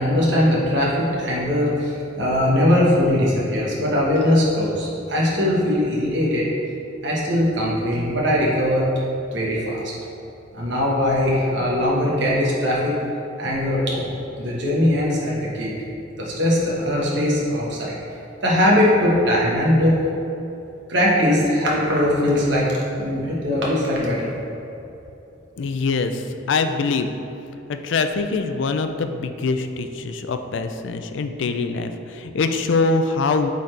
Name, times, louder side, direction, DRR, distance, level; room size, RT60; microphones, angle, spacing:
voice 1, 0.0-6.4 7.0-8.9 9.3-9.9 10.5-12.9 13.4-15.7 16.2-18.0 18.4-20.0 20.9-22.7 23.0-24.4, left 1 dB, 65° right, -5 dB, 1.2 m, -20 dB
voice 2, 25.6-27.1 27.7-33.5, left 4 dB, 70° left, 8 dB, 0.4 m, -23 dB
8.5 x 4.1 x 3.3 m, 2.9 s
head